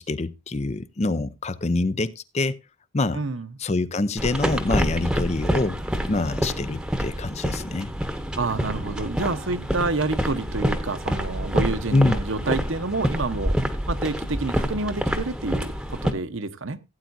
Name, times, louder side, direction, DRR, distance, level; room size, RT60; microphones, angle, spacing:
voice 1, 0.0-2.6 2.9-3.2 3.6-5.8 6.1-7.9 11.9-12.2, left 2 dB, 30° left, 0.5 m, -25 dB
voice 2, 3.1-3.5 8.4-13.5 13.9-16.8, right 3 dB, 60° right, 0.9 m, -28 dB
sound 1, 4.2-16.1, equal, 5° right, 1.0 m, -27 dB
16.5 x 9.0 x 2.6 m
head